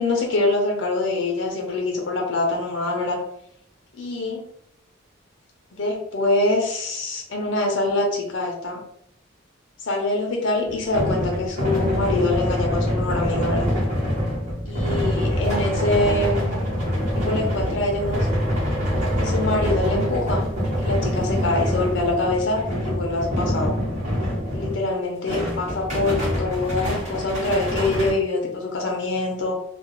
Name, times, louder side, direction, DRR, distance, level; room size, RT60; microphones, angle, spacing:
voice 1, 0.0-3.2 4.0-4.4 5.7-8.8 9.8-13.7 14.7-16.7 17.1-18.3 19.2-20.4 20.8-23.7 24.5-29.5, left 2 dB, 60° left, 1 dB, 0.5 m, -24 dB
sound 1, 10.7-24.9 25.3-28.1, equal, 35° right, 0.9 m, -25 dB
sound 2, 16.8-22.3, equal, 75° right, 0.9 m, -39 dB
2.3 x 2.1 x 3.0 m, 0.73 s
head